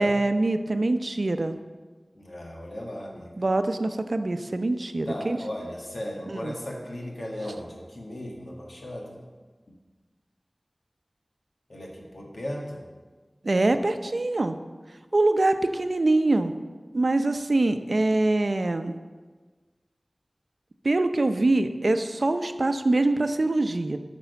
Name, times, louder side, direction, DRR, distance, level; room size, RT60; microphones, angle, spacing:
voice 1, 0.0-1.6 3.4-5.4 6.3-6.5 13.4-14.6 15.1-16.5 16.9-18.9 20.8-24.0, right 2 dB, 75° right, 8 dB, 0.6 m, -24 dB
voice 2, 2.1-3.4 5.1-9.2 11.7-12.8, left 1 dB, 80° left, -1 dB, 2.0 m, -36 dB
8.8 x 6.1 x 7.0 m, 1.4 s
wide cardioid pair, 55°, 0 cm